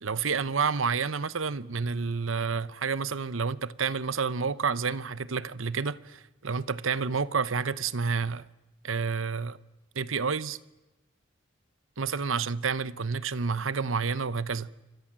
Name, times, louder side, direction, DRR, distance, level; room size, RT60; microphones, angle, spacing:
voice 1, 0.0-8.4 8.8-9.6 9.9-10.6 12.0-14.7, right 5 dB, 80° right, 1.0 m, -29 dB
27.0 x 25.5 x 7.6 m
head